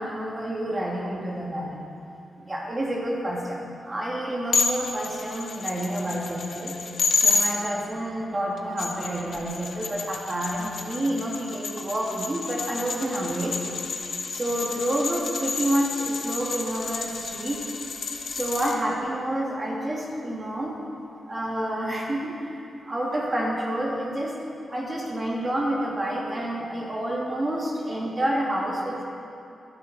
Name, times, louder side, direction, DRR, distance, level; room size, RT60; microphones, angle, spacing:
voice 1, 0.0-1.8 2.4-6.7 7.1-13.6 14.3-17.6 18.3-20.8 21.3-24.3 24.7-29.0, right 1 dB, 25° right, -3 dB, 2.4 m, -29 dB
sound 1, 4.5-7.5 8.6-18.8, left 4 dB, 65° left, 1.4 m, -30 dB
22.5 x 11.0 x 4.3 m, 2.7 s
wide cardioid pair, 135°, 0 cm